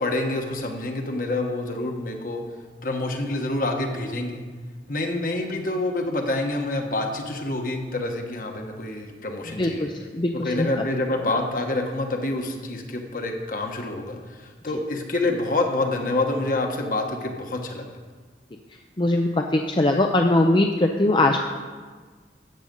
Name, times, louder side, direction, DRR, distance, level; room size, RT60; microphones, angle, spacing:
voice 1, 0.0-2.4 2.8-4.4 4.9-9.9 10.4-17.9, left 2 dB, 50° left, 3 dB, 1.4 m, -27 dB
voice 2, 9.6-10.7 19.0-21.4, left 1 dB, 25° left, 3 dB, 0.5 m, -21 dB
14.0 x 7.8 x 5.4 m, 1.5 s
head